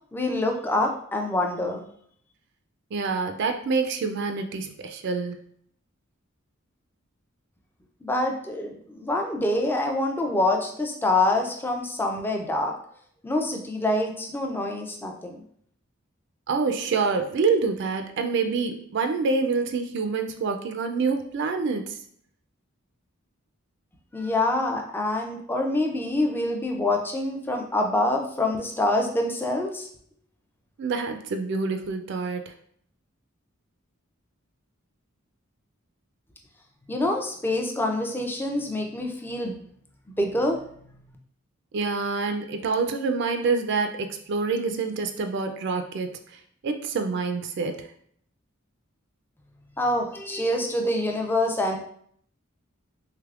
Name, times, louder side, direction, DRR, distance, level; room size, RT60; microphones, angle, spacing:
voice 1, 0.1-1.9 8.0-12.8 13.2-15.4 24.1-29.9 36.9-39.6 40.2-41.1 49.8-51.8, left 1 dB, 10° left, 2 dB, 0.4 m, -26 dB
voice 2, 2.9-5.4 16.5-22.0 30.8-32.4 41.7-46.2 46.6-47.9, right 4 dB, 55° right, 6 dB, 0.4 m, -26 dB
3.3 x 3.2 x 2.4 m, 0.62 s
head